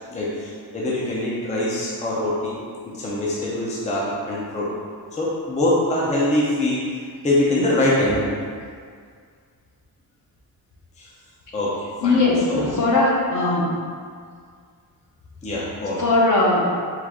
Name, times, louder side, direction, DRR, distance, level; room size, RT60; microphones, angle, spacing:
voice 1, 0.1-2.6 2.9-4.8 5.1-8.3 11.0-11.1 11.5-12.2 12.5-12.7 15.4-16.0, left 1 dB, 20° left, -6 dB, 0.5 m, -23 dB
voice 2, 12.0-13.7 16.0-16.8, left 2 dB, 50° left, -4 dB, 0.9 m, -19 dB
4.8 x 2.5 x 3.5 m, 2.1 s
wide cardioid pair, 155°, 38 cm